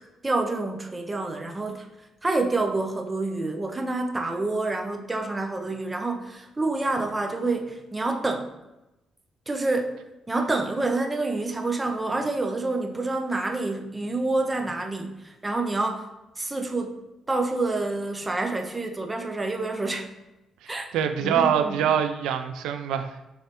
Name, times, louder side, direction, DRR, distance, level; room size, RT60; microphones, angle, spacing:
voice 1, 0.2-1.9 2.2-8.5 9.5-10.0 10.3-16.1 16.4-17.0 17.3-20.1 20.7-20.9 21.2-21.9, right 2 dB, 20° right, 4 dB, 0.7 m, -27 dB
voice 2, 20.6-23.2, right 8 dB, 90° right, 8 dB, 0.3 m, -25 dB
5.3 x 3.3 x 3.0 m, 0.97 s
cardioid pair, 90°, 0 cm